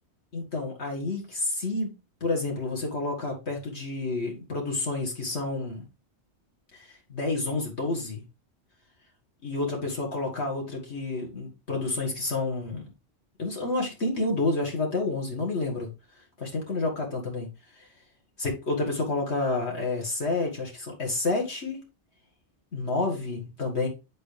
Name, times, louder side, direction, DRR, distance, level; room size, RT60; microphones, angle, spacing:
voice 1, 0.3-1.9 2.2-5.8 6.7-8.2 9.4-12.9 13.4-17.9 18.4-21.8 22.7-23.9, left 3 dB, 65° left, 2.2 m, -29 dB
9.3 x 4.7 x 3.4 m
omnidirectional pair, 1.2 m